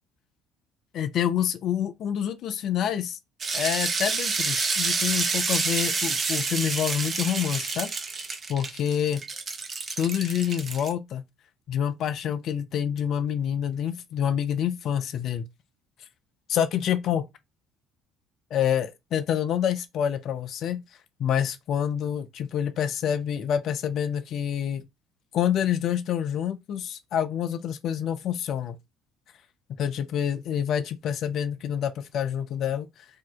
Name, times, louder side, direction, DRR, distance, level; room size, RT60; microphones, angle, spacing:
voice 1, 0.9-3.2 3.5-7.9 8.5-9.2 10.0-11.2 11.7-15.4 16.5-17.3 18.5-20.8 21.2-24.8 25.3-28.8 29.8-33.1, left 9 dB, 55° left, 0.4 m, -27 dB
sound 1, 3.4-10.9, right 4 dB, 40° right, 0.7 m, -28 dB
2.8 x 2.1 x 4.0 m
hypercardioid pair, 60°, 0 cm